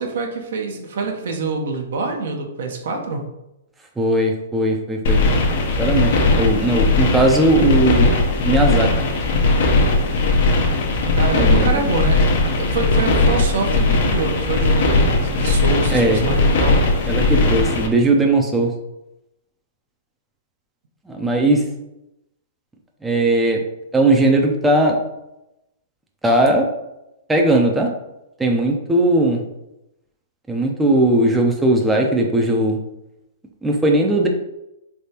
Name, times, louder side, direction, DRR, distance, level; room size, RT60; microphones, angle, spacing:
voice 1, 0.0-3.2 11.1-12.3 12.6-16.8, right 3 dB, 70° right, 2 dB, 0.8 m, -25 dB
voice 2, 4.0-5.3 5.8-8.1 8.4-8.9 11.3-11.8 15.9-16.2 17.1-18.7 21.1-21.6 23.0-23.6 23.9-25.0 26.2-26.7 27.3-27.9 28.4-29.4 30.5-32.8 33.6-34.3, right 1 dB, 10° right, 1 dB, 0.5 m, -18 dB
sound 1, 5.0-17.9, left 2 dB, 60° left, 0.7 m, -18 dB
3.4 x 3.2 x 2.8 m, 0.88 s
hypercardioid pair, 130°, 0 cm